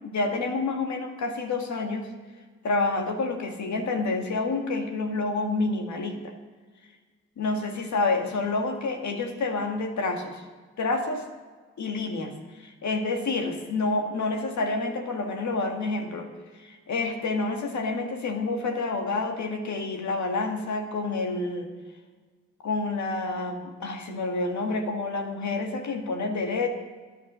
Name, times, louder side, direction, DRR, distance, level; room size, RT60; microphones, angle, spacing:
voice 1, 0.0-2.1 2.6-6.3 7.4-10.4 10.8-11.2 11.8-16.3 16.6-21.7 22.6-26.7, left 3 dB, 70° left, 4 dB, 1.8 m, -28 dB
11.5 x 10.5 x 6.2 m, 1.4 s
supercardioid pair, 50°, 29 cm